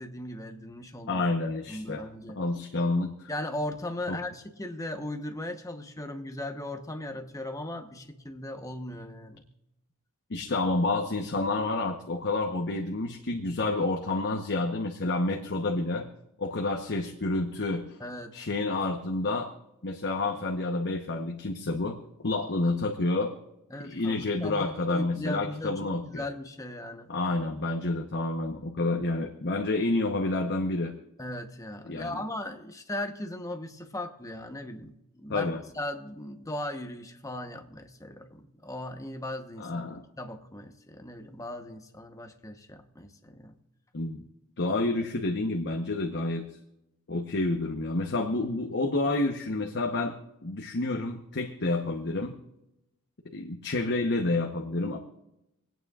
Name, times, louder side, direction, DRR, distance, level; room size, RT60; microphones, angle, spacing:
voice 1, 0.0-1.3 1.7-2.4 3.3-9.5 18.0-18.4 23.7-27.2 31.2-43.6, left 1 dB, 15° left, 6 dB, 1.0 m, -38 dB
voice 2, 1.1-2.0 2.4-3.3 4.1-4.2 10.3-16.1 16.4-18.0 18.3-19.5 19.8-22.0 22.2-23.3 23.8-26.3 27.1-30.9 31.9-32.2 35.3-35.6 39.6-40.0 43.9-44.2 44.6-46.5 47.1-50.2 50.4-52.4 53.3-55.0, left 2 dB, 50° left, 2 dB, 1.0 m, -29 dB
27.5 x 9.2 x 2.4 m, 0.88 s
head